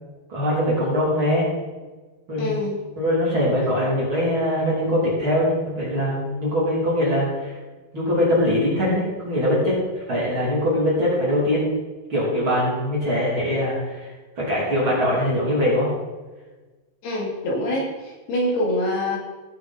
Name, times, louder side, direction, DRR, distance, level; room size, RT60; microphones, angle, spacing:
voice 1, 0.3-1.5 2.3-2.6 3.0-7.5 7.9-11.6 12.1-14.1 14.4-15.9, left 1 dB, 30° right, -7 dB, 3.4 m, -22 dB
voice 2, 2.4-2.8 17.0-19.2, left 1 dB, 65° left, -3 dB, 4.2 m, -25 dB
16.5 x 7.7 x 4.2 m, 1.3 s
omnidirectional pair, 5.0 m